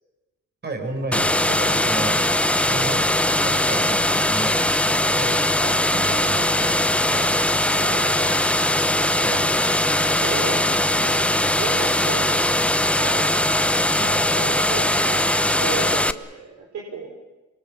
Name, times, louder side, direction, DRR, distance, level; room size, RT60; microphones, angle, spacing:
voice 1, 0.6-2.2 2.6-4.6 5.1-7.3 9.2-9.5 14.0-14.3, right 2 dB, 35° right, 4 dB, 6.6 m, -33 dB
sound 1, 1.1-16.1, left 1 dB, 5° left, 0.8 m, -20 dB
voice 2, 7.8-8.4 9.2-9.5 10.0-12.6 12.9-13.3 14.3-15.2 15.5-17.1, right 5 dB, 65° right, -1 dB, 5.1 m, -34 dB
25.0 x 23.5 x 7.2 m, 1.1 s
cardioid pair, 90°, 30 cm